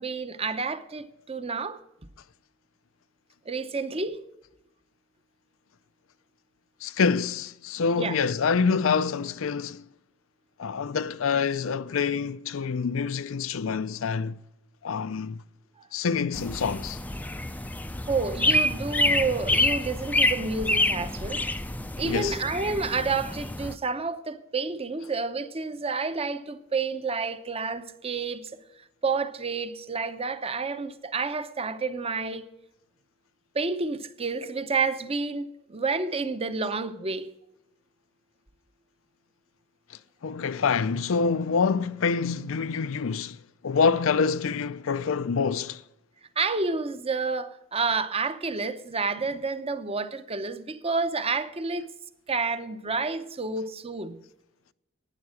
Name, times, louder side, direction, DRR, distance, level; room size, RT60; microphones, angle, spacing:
voice 1, 0.0-1.8 3.5-4.2 8.0-8.2 15.8-15.9 18.1-21.4 21.9-28.5 29.0-32.4 33.5-37.3 46.4-51.9 52.3-54.2, right 4 dB, 30° right, 0.8 m, -29 dB
voice 2, 6.8-9.8 10.6-14.4 14.8-15.4 15.9-17.0 22.0-22.4 40.2-43.4 43.6-45.8, left 5 dB, 75° left, 0.5 m, -26 dB
sound 1, 16.3-23.7, left 1 dB, 10° left, 0.5 m, -27 dB
11.5 x 9.5 x 6.4 m
head